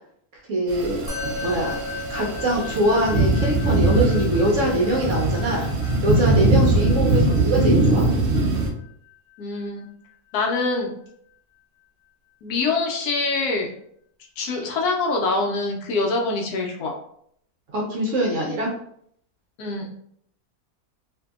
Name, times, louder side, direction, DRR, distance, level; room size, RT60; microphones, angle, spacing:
voice 1, 0.5-1.0 1.4-1.8 2.1-5.7 6.0-8.1 17.7-18.7, right 1 dB, 65° right, -2 dB, 0.8 m, -23 dB
sound 1, 0.7-8.7, right 2 dB, 90° right, 0.5 m, -21 dB
Musical instrument, 1.1-10.6, left 3 dB, 5° right, 0.8 m, -38 dB
voice 2, 9.4-9.9 10.3-10.9 12.4-13.7 14.4-16.9 19.6-20.0, left 3 dB, 75° left, 0 dB, 1.0 m, -24 dB
2.7 x 2.6 x 2.3 m, 0.67 s
omnidirectional pair, 1.7 m